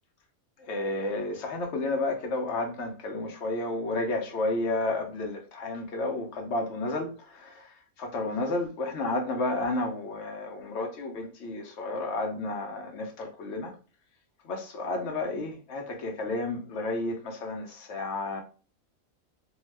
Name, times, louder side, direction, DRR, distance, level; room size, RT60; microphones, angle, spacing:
voice 1, 0.7-7.7 8.0-13.7 14.4-18.4, left 2 dB, 60° left, 0.8 m, -31 dB
2.7 x 2.2 x 3.2 m
omnidirectional pair, 1.5 m